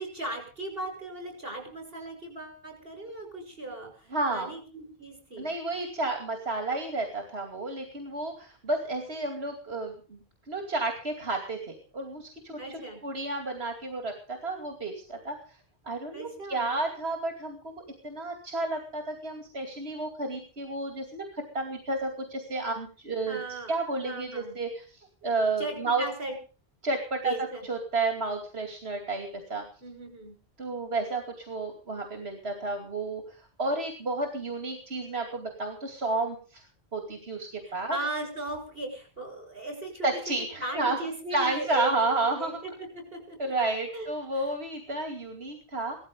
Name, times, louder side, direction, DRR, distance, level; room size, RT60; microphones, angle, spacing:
voice 1, 0.0-5.5 12.6-13.0 16.1-16.7 23.3-24.6 25.6-26.3 27.2-27.6 29.8-30.3 37.7-42.1 42.4-43.4 43.9-44.1 44.3-44.5, right 1 dB, 65° right, 4 dB, 7.2 m, -37 dB
voice 2, 4.1-4.5 5.4-15.6 15.8-17.7 18.0-23.4 23.7-26.0 26.8-27.3 27.6-29.6 30.6-36.6 36.9-38.0 40.0-41.0 41.3-42.6 43.4-46.0, right 2 dB, 90° right, 4 dB, 2.8 m, -31 dB
18.0 x 14.5 x 5.3 m, 0.39 s
omnidirectional pair, 1.0 m